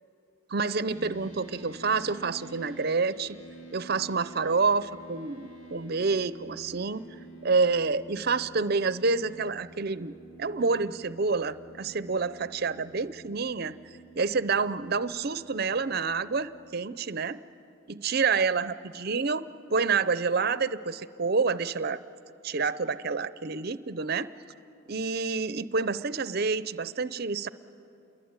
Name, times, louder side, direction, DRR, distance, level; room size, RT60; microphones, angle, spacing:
voice 1, 0.5-3.4 3.7-7.0 7.4-13.7 14.2-17.4 17.9-22.0 22.4-24.3 24.9-27.5, right 4 dB, 50° right, 15 dB, 0.6 m, -28 dB
sound 1, 0.9-16.7, right 1 dB, 85° left, 2.1 m, -49 dB
28.5 x 22.5 x 8.9 m, 2.7 s
head